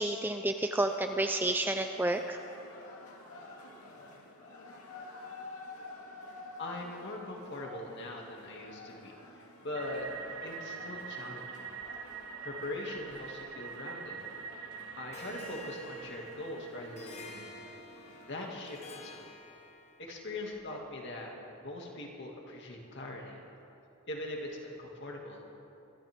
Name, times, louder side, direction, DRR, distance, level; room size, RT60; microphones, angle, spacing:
voice 1, 0.0-2.4, right 1 dB, 10° right, 6 dB, 0.4 m, -30 dB
sound 1, 0.7-19.1, left 2 dB, 80° left, 2.0 m, -51 dB
voice 2, 6.6-9.2 9.6-10.1 10.4-11.6 12.4-14.2 14.9-17.5 18.2-19.3 20.0-21.3 21.6-23.4 24.1-25.4, left 1 dB, 50° left, -1 dB, 2.4 m, -41 dB
sound 2, 9.8-17.8, right 6 dB, 55° right, 1.2 m, -45 dB
Harp, 15.1-20.1, left 1 dB, 30° left, 1.2 m, -49 dB
23.0 x 14.5 x 3.7 m, 2.8 s
head